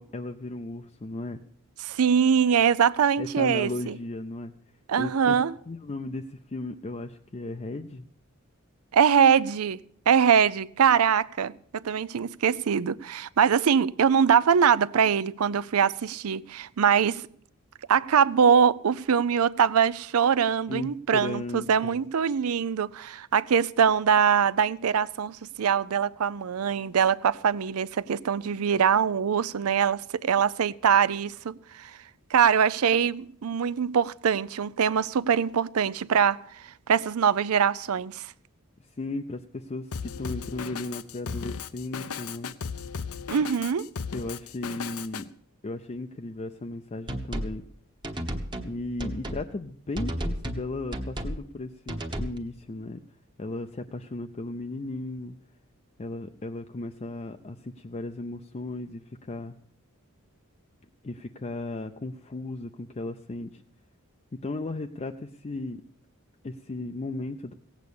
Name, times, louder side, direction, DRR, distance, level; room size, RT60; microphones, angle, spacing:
voice 1, 0.0-1.4 3.2-4.5 5.0-5.4 5.7-8.1 20.7-22.0 39.0-42.5 44.1-45.3 45.6-47.6 48.6-53.0 53.4-55.3 56.0-59.5 61.0-63.6 64.4-65.8 66.4-67.5, left 2 dB, 30° left, 0.5 m, -35 dB
voice 2, 1.8-4.0 4.9-5.5 8.9-9.8 10.1-17.2 17.9-32.0 32.3-36.4 36.6-38.3 43.3-43.9, right 7 dB, 80° right, 0.5 m, -23 dB
Drum kit, 39.9-45.2, left 6 dB, 90° left, 0.7 m, -36 dB
sound 1, 47.1-47.6 48.0-48.7 49.0-49.5 50.0-50.7 50.9-51.4 51.9-52.4, equal, 20° right, 1.1 m, -32 dB
16.5 x 8.2 x 6.9 m
head